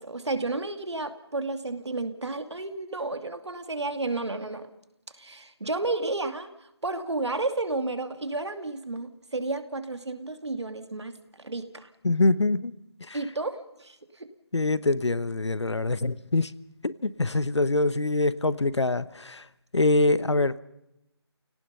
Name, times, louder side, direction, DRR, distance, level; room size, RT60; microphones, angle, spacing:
voice 1, 0.0-4.7 5.2-6.5 6.8-11.9 13.1-14.3, right 2 dB, 80° right, 8 dB, 2.4 m, -32 dB
voice 2, 12.0-12.7 13.1-13.2 14.5-16.5 17.0-19.4 19.7-20.6, left 2 dB, 85° left, 15 dB, 1.2 m, -24 dB
29.5 x 18.0 x 5.6 m, 0.85 s
figure-of-eight pair, 165°, 14 cm